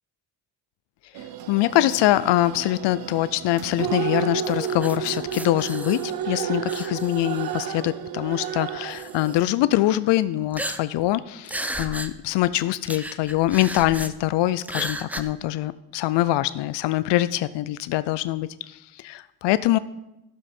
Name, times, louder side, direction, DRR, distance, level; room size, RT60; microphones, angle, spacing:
sound 1, 1.2-9.4, right 9 dB, 60° right, 0.7 m, -31 dB
voice 1, 1.5-19.8, left 15 dB, 85° left, 16 dB, 0.5 m, -24 dB
sound 2, 4.4-6.3 6.7-7.8 8.4-8.5 8.9-9.4 10.5-11.1 11.5-12.1 12.4-12.5 12.8-14.1 14.6-15.2, right 1 dB, 5° right, 0.5 m, -34 dB
13.0 x 7.3 x 4.3 m, 0.91 s
cardioid pair, 105°, 41 cm